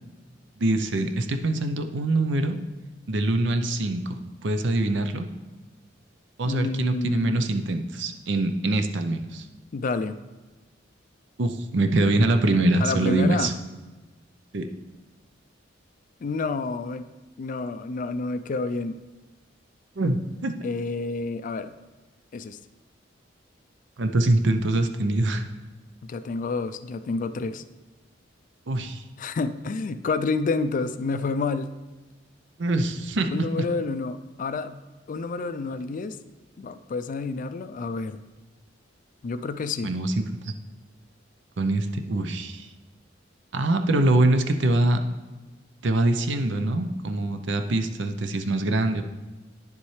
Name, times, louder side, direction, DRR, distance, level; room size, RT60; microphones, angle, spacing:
voice 1, 0.6-2.6 3.1-5.3 6.4-9.4 11.4-13.5 14.5-14.7 20.0-20.5 24.0-25.4 28.7-29.0 32.6-33.6 39.8-40.5 41.6-42.7 43.5-45.0 45.8-49.0, right 2 dB, 70° right, 7 dB, 0.6 m, -24 dB
voice 2, 6.4-7.6 9.7-10.2 12.8-13.5 16.2-17.1 17.4-19.0 20.6-21.7 22.3-22.6 26.0-27.6 29.2-31.7 33.3-34.8 35.1-36.2 36.6-38.2 39.2-39.9, left 3 dB, 45° left, 11 dB, 0.4 m, -29 dB
9.8 x 7.1 x 3.2 m, 1.2 s
head